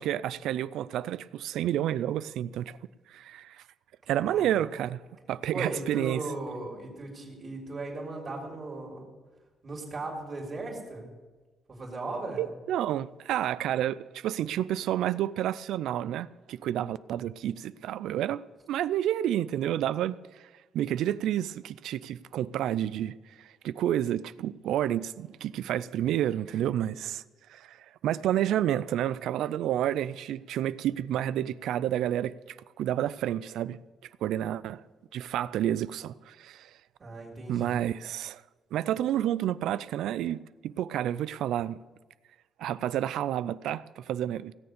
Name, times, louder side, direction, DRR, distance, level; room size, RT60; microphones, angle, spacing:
voice 1, 0.0-2.8 3.1-3.6 4.1-5.0 5.3-6.2 12.4-18.4 18.7-20.2 20.7-23.1 23.4-27.2 27.5-27.8 28.0-33.8 34.2-34.8 35.1-36.7 37.5-38.4 38.7-41.8 42.6-44.5, right 11 dB, 80° right, 0.4 m, -30 dB
voice 2, 4.2-4.5 5.5-9.1 9.6-11.1 11.7-12.5 37.0-37.8, right 2 dB, 40° right, 3.6 m, -37 dB
17.5 x 7.0 x 6.7 m
cardioid pair, 90°, 0 cm